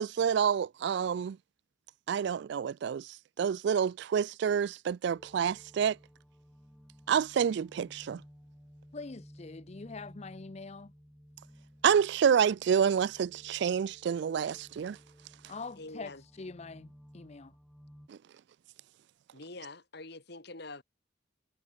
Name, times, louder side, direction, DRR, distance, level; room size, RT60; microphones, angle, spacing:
voice 1, 0.0-1.4 2.1-3.1 3.4-6.0 7.1-8.2 11.8-15.0 18.1-18.2, right 7 dB, 60° right, 0.3 m, -28 dB
sound 1, 5.0-18.1, equal, ahead, 7.8 m, -56 dB
voice 2, 8.9-10.9 15.5-17.5, left 3 dB, 35° left, 0.6 m, -44 dB
voice 3, 15.8-16.2 19.3-20.8, left 2 dB, 55° left, 3.1 m, -45 dB
head